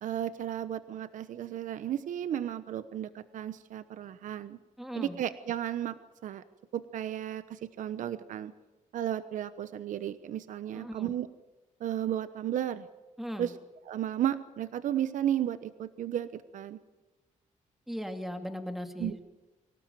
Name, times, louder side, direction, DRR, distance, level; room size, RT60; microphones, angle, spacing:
voice 1, 0.0-4.6 4.9-6.4 6.7-8.5 8.9-11.3 11.8-12.9 13.4-13.5 13.9-16.8 19.0-19.1, right 11 dB, 75° right, 13 dB, 1.1 m, -34 dB
voice 2, 4.8-5.2 10.7-11.1 13.2-13.5 17.9-19.2, equal, ahead, 6 dB, 2.2 m, -38 dB
25.0 x 17.5 x 9.1 m, 1.1 s
wide cardioid pair, 165°, 13 cm